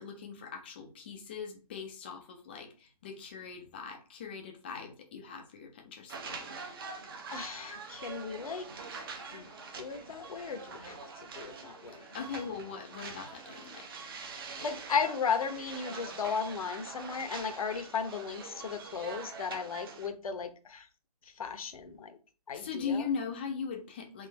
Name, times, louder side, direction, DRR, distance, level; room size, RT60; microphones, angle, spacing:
voice 1, 0.0-6.5 12.1-13.9 22.5-24.3, left 6 dB, 15° left, 3 dB, 0.4 m, -40 dB
sound 1, 6.1-20.1, right 4 dB, 35° right, 0.7 m, -44 dB
voice 2, 7.3-8.6 9.3-11.1 11.3-12.1 14.6-20.9 21.4-22.2 22.5-23.1, left 6 dB, 60° left, 9 dB, 0.8 m, -35 dB
3.8 x 2.5 x 3.9 m, 0.36 s
hypercardioid pair, 165°, 20 cm